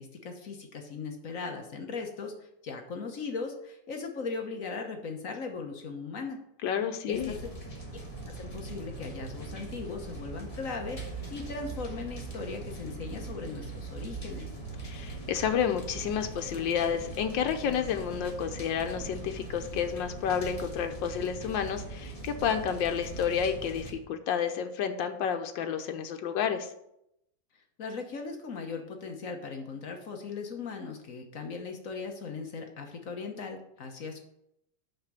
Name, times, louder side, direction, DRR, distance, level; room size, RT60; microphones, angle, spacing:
voice 1, 0.0-6.4 7.1-7.3 8.3-11.0 11.3-14.5 27.8-34.2, left 4 dB, 50° left, 3 dB, 1.3 m, -38 dB
voice 2, 6.6-7.3 14.8-26.7, left 8 dB, 85° left, 6 dB, 1.5 m, -30 dB
sound 1, 7.1-23.9, right 2 dB, 20° left, 1.5 m, -41 dB
5.8 x 5.8 x 6.8 m, 0.79 s
omnidirectional pair, 2.0 m